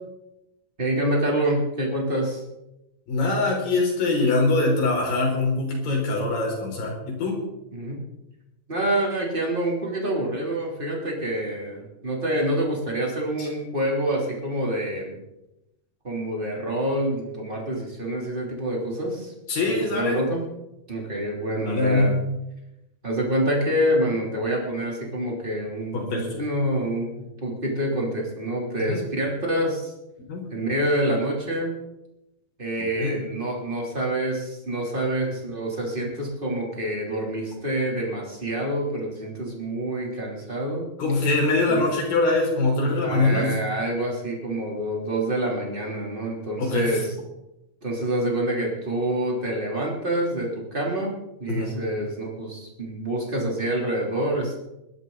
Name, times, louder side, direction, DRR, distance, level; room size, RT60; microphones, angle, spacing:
voice 1, 0.8-2.4 7.7-8.0 8.7-15.2 16.0-19.3 19.6-20.4 20.9-22.2 23.0-27.1 27.4-29.9 30.5-31.8 32.6-40.9 41.7-41.8 43.0-47.2 47.8-51.1 51.4-54.6, right 1 dB, 15° right, -2 dB, 2.9 m, -27 dB
voice 2, 3.1-7.4 13.4-13.5 19.5-20.2 21.6-22.2 25.9-26.4 28.9-29.0 30.3-30.4 33.0-33.2 41.0-43.5 46.6-47.0 51.5-51.7, left 2 dB, 65° left, 0 dB, 5.7 m, -23 dB
21.0 x 12.5 x 4.0 m, 0.91 s
omnidirectional pair, 4.5 m